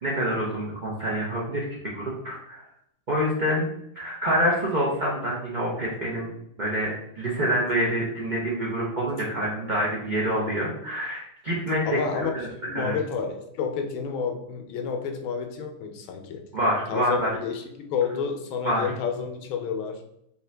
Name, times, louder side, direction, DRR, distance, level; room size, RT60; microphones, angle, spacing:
voice 1, 0.0-2.6 3.1-3.7 3.9-6.3 6.6-12.3 12.7-13.0 16.5-17.3 18.6-18.9, equal, 85° right, -6 dB, 0.4 m, -26 dB
voice 2, 11.9-12.3 12.7-16.4 16.9-20.0, left 6 dB, 80° left, 5 dB, 1.4 m, -30 dB
4.9 x 2.8 x 3.3 m, 0.76 s
omnidirectional pair, 2.2 m